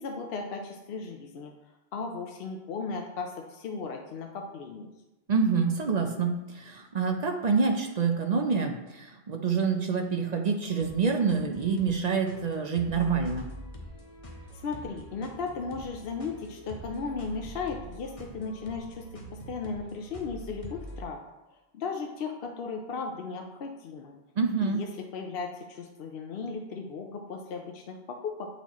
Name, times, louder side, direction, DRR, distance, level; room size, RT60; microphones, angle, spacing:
voice 1, 0.0-1.5 1.9-4.9 14.5-19.0 19.3-21.2 21.5-24.2 24.6-24.9 25.1-28.5, left 4 dB, 65° left, 2 dB, 0.8 m, -36 dB
voice 2, 5.3-13.5 24.4-24.8, right 5 dB, 50° right, 4 dB, 0.6 m, -27 dB
sound 1, 10.6-21.0, equal, 35° left, 0.9 m, -45 dB
8.7 x 4.1 x 3.0 m, 0.97 s
omnidirectional pair, 1.1 m